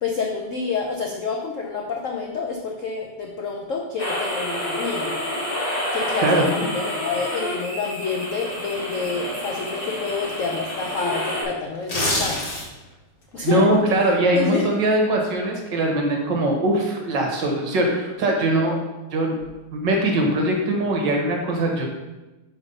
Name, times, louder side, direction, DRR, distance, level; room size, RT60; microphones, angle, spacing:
voice 1, 0.0-5.2 5.9-12.4 13.3-13.8 14.3-14.7, left 4 dB, 75° left, 0 dB, 0.7 m, -28 dB
sound 1, 4.0-11.4, left 1 dB, 60° left, 2.5 m, -28 dB
sound 2, 11.7-12.9 13.3-13.5, left 1 dB, 35° left, 1.1 m, -25 dB
voice 2, 13.4-18.7 19.1-19.3 19.7-21.9, right 1 dB, 60° right, 0 dB, 1.8 m, -21 dB
5.3 x 5.1 x 5.3 m, 1.1 s
omnidirectional pair, 2.3 m